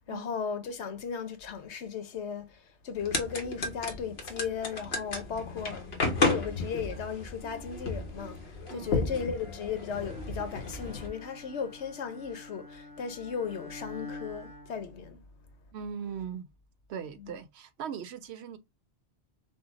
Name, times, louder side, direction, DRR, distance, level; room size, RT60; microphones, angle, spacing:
voice 1, 0.1-5.9 6.2-8.4 8.7-15.2 17.0-17.4, left 6 dB, 85° left, 1.1 m, -36 dB
sound 1, 3.0-11.1, left 3 dB, 65° left, 1.3 m, -33 dB
voice 2, 8.7-9.0 15.7-16.5 16.9-18.6, right 7 dB, 75° right, 0.9 m, -39 dB
Bowed string instrument, 10.5-15.5, left 2 dB, 25° left, 0.5 m, -47 dB
5.5 x 2.1 x 3.9 m
omnidirectional pair, 1.1 m